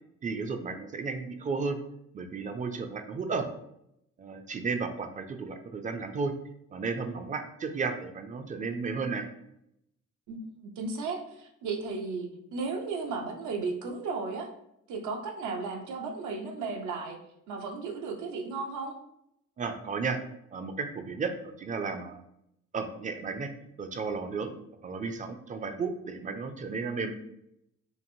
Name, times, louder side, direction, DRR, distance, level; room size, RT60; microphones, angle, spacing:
voice 1, 0.2-1.8 2.1-3.5 4.2-6.3 6.7-9.3 19.6-20.2 20.5-22.2 22.7-23.5 23.8-24.5 24.8-27.1, right 4 dB, 25° right, 7 dB, 0.3 m, -33 dB
voice 2, 10.3-14.5 14.9-17.2 17.5-18.9, right 4 dB, 80° right, 3 dB, 0.6 m, -35 dB
2.9 x 2.5 x 2.6 m, 0.77 s
cardioid pair, 90°, 30 cm